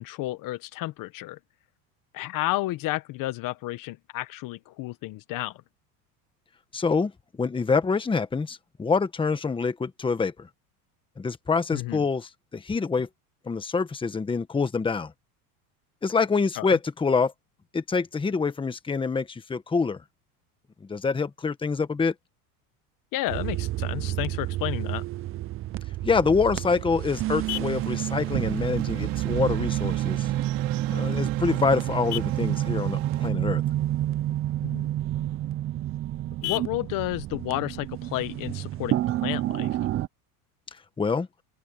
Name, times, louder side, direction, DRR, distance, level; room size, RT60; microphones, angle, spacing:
voice 1, 0.0-1.4 2.1-5.6 11.7-12.1 16.6-16.8 23.1-25.0 34.6-34.9 36.4-39.8, left 17 dB, 45° left, 1.2 m, -31 dB
voice 2, 6.7-7.1 7.4-10.3 11.2-13.1 13.5-15.1 16.0-17.3 17.7-20.0 20.9-22.1 26.0-30.3 30.9-33.6 41.0-41.3, left 4 dB, 10° left, 1.3 m, -26 dB
sound 1, 23.3-40.1, right 14 dB, 30° right, 0.6 m, -29 dB
Vehicle horn car horn honking, 26.2-39.2, left 20 dB, 85° left, 7.1 m, -44 dB
sound 2, 27.5-33.3, right 27 dB, 65° right, 4.4 m, -40 dB
open air
supercardioid pair, 130°, 44 cm